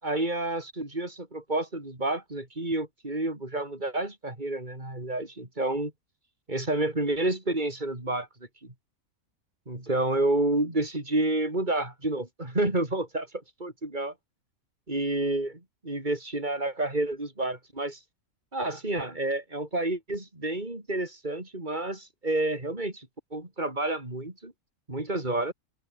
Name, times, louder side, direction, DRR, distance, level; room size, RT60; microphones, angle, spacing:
voice 1, 0.0-5.9 6.5-8.3 8.6-8.7 9.7-13.3 13.6-14.1 14.9-18.0 18.5-23.1 23.3-24.5 24.9-25.5, right 2 dB, 30° right, 5.5 m, -29 dB
open air
omnidirectional pair, 1.5 m